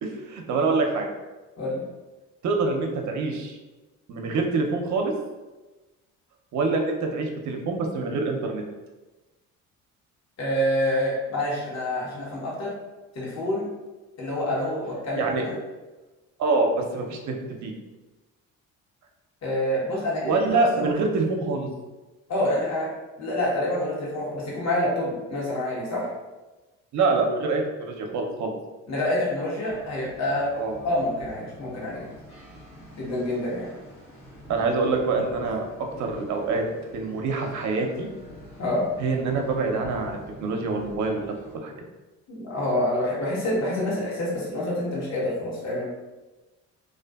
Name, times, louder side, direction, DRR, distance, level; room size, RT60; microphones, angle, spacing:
voice 1, 0.0-1.1 2.4-3.6 4.1-5.1 6.5-8.6 15.1-15.4 16.4-17.4 17.6-17.7 20.2-21.7 26.9-28.5 30.6-30.7 34.5-35.7 36.0-36.6 36.9-38.1 39.0-41.3 41.6-41.7, right 3 dB, 55° right, 2 dB, 0.6 m, -25 dB
voice 2, 10.4-12.7 13.1-13.7 14.2-15.5 19.4-20.9 22.3-22.9 23.2-26.1 28.9-30.5 30.8-32.1 32.9-33.7 38.6-38.8 42.3-45.9, left 1 dB, 50° left, -6 dB, 1.1 m, -27 dB
sound 1, 29.7-41.6, equal, 85° left, 1.2 m, -46 dB
2.4 x 2.4 x 2.3 m, 1.2 s
supercardioid pair, 70°, 35 cm